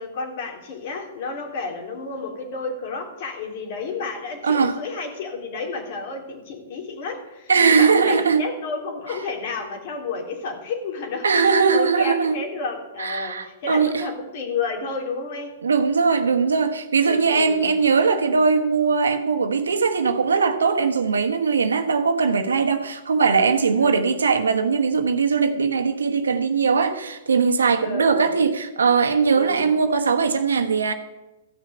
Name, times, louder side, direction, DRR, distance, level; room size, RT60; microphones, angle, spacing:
voice 1, 0.0-15.5 17.1-17.8 23.8-24.0 27.8-28.3 29.3-29.7, left 4 dB, 55° left, 3.1 m, -31 dB
voice 2, 4.4-4.8 7.5-8.4 11.2-12.4 13.0-14.0 15.6-30.9, right 5 dB, 85° right, 1.2 m, -20 dB
14.5 x 6.3 x 7.8 m
hypercardioid pair, 115°, 0 cm